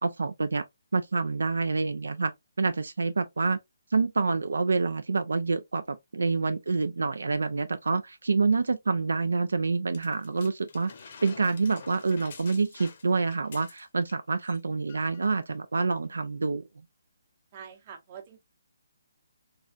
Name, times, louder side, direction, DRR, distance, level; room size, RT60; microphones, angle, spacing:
voice 1, 0.0-0.6 0.9-2.3 2.6-3.6 3.9-10.9 11.2-16.6, right 4 dB, 85° right, 0.4 m, -27 dB
sound 1, 9.9-14.2 14.4-14.6 14.9-15.3 16.0-16.1, left 5 dB, 50° left, 0.7 m, -48 dB
voice 2, 17.5-18.4, right 8 dB, 35° right, 0.8 m, -45 dB
3.2 x 2.4 x 2.4 m
hypercardioid pair, 155°, 0 cm